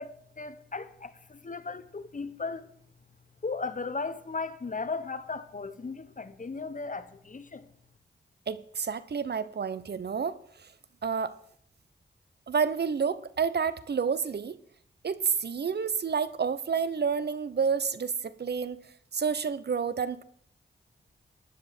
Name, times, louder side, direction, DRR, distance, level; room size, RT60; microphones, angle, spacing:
voice 1, 0.0-2.7 3.4-7.7, left 4 dB, 40° left, 1.1 m, -36 dB
voice 2, 8.5-10.7 11.0-11.4 12.5-14.6 15.0-18.8 19.1-20.2, right 6 dB, 60° right, 0.7 m, -29 dB
14.0 x 10.0 x 4.3 m
cardioid pair, 45°, 20 cm